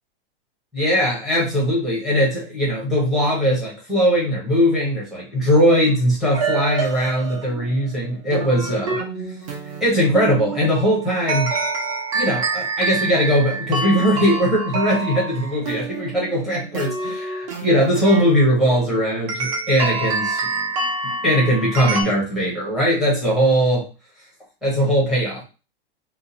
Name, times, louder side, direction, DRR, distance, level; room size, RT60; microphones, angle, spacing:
voice 1, 0.7-9.0 9.8-11.5 12.1-20.6 21.0-23.9 24.6-25.4, equal, ahead, -6 dB, 0.8 m, -20 dB
sound 1, 6.3-22.0, right 3 dB, 35° right, 0.9 m, -27 dB
2.8 x 2.3 x 3.9 m, 0.32 s
supercardioid pair, 175°, 30 cm